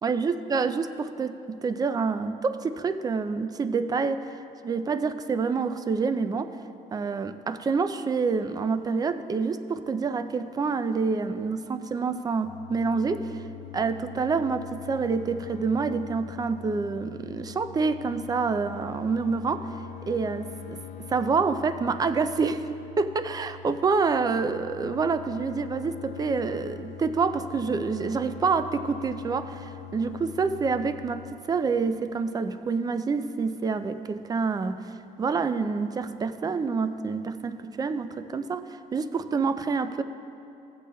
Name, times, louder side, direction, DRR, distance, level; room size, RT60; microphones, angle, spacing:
voice 1, 0.0-4.2 4.6-6.5 6.9-13.5 13.7-19.7 20.1-22.7 23.0-34.9 35.2-38.6 38.9-40.0, right 4 dB, 20° right, 11 dB, 0.4 m, -27 dB
sound 1, 12.4-31.4, left 10 dB, 55° left, 0.4 m, -43 dB
15.0 x 8.4 x 2.2 m, 2.9 s
cardioid pair, 110°, 17 cm